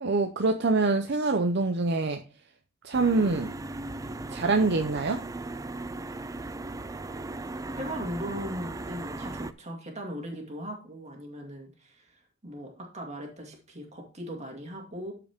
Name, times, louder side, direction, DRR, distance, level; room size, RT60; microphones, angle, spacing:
voice 1, 0.0-2.2 2.8-3.5 4.3-5.2, right 3 dB, 50° right, 6 dB, 0.6 m, -25 dB
sound 1, 2.9-9.5, right 2 dB, 15° right, 0.3 m, -37 dB
voice 2, 7.8-12.0 12.4-15.1, equal, 30° right, 2 dB, 2.1 m, -38 dB
12.5 x 4.8 x 3.5 m, 0.36 s
head